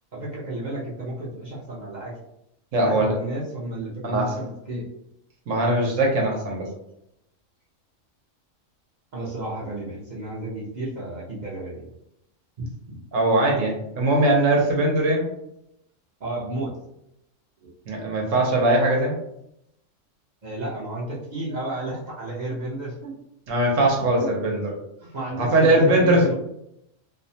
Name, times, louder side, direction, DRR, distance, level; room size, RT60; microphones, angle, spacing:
voice 1, 0.1-2.1 2.8-4.9 9.1-11.9 12.6-12.7 16.2-16.7 17.6-17.7 20.4-23.2 24.2-24.3 25.0-26.3, right 1 dB, 50° right, -6 dB, 0.6 m, -32 dB
voice 2, 2.7-3.1 4.0-4.3 5.5-6.7 13.1-15.3 17.9-19.2 23.5-24.7 25.4-26.2, right 1 dB, 80° right, -1 dB, 1.0 m, -20 dB
2.6 x 2.1 x 2.6 m, 0.80 s
omnidirectional pair, 1.3 m